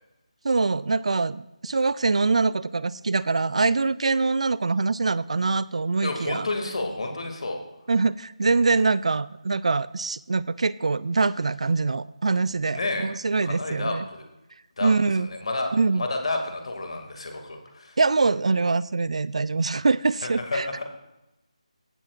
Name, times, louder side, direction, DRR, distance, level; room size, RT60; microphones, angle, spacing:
voice 1, 0.4-6.5 7.9-14.1 14.8-15.3 15.7-16.0 18.0-20.8, right 3 dB, 60° right, 19 dB, 0.4 m, -24 dB
voice 2, 6.0-7.6 12.7-13.1 13.4-14.2 14.8-18.0 20.2-20.8, left 2 dB, 55° left, 4 dB, 2.1 m, -30 dB
16.0 x 7.5 x 2.4 m, 0.94 s
figure-of-eight pair, 170°, 4 cm